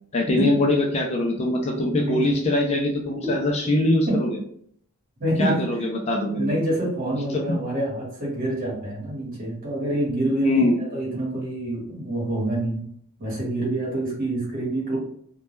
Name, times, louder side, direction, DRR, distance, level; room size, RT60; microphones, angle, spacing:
voice 1, 0.1-4.4 5.4-6.5 7.3-7.4 10.4-10.8, left 2 dB, 30° left, 1 dB, 0.3 m, -22 dB
voice 2, 5.2-5.6 6.4-10.6 10.9-12.8 13.2-15.0, right 1 dB, 40° right, -4 dB, 1.1 m, -26 dB
2.2 x 2.2 x 2.9 m, 0.63 s
head